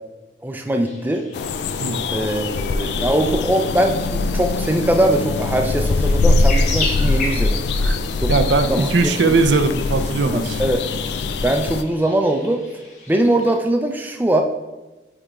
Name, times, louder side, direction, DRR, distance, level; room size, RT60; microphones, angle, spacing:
voice 1, 0.4-1.2 2.1-7.6 8.2-8.3 8.7-8.9 10.3-10.8 11.4-12.6 13.1-14.4, right 1 dB, 10° right, 3 dB, 0.4 m, -21 dB
sound 1, 0.8-13.6, left 3 dB, 45° left, 1.1 m, -36 dB
sound 2, 1.3-11.8, left 3 dB, 70° left, 0.4 m, -22 dB
voice 2, 8.3-10.6, right 3 dB, 85° right, 8 dB, 0.5 m, -19 dB
9.5 x 3.4 x 3.7 m, 1.1 s
head